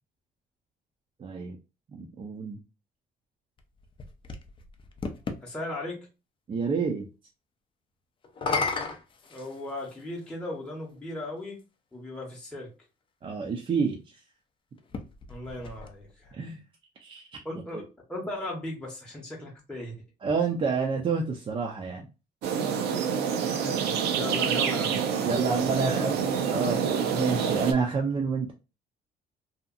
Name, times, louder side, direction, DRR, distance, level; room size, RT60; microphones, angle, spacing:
voice 1, 1.2-1.6 1.9-2.6 6.5-7.1 13.2-14.2 16.3-16.6 17.0-17.3 20.2-22.1 25.2-26.2 26.5-28.5, right 5 dB, 30° right, 0 dB, 0.5 m, -28 dB
sound 1, 3.6-5.4 8.2-10.0 11.0-11.1 14.8-16.3, left 4 dB, 30° left, 0.4 m, -34 dB
voice 2, 5.4-6.1 9.3-11.6 11.9-12.7 15.3-16.4 17.4-17.8 18.1-20.0 24.1-25.5 25.8-26.2, left 1 dB, 5° left, -3 dB, 0.8 m, -37 dB
sound 2, 22.4-27.7, right 7 dB, 75° right, 0.6 m, -27 dB
2.7 x 2.4 x 2.4 m, 0.30 s
cardioid pair, 110°, 17 cm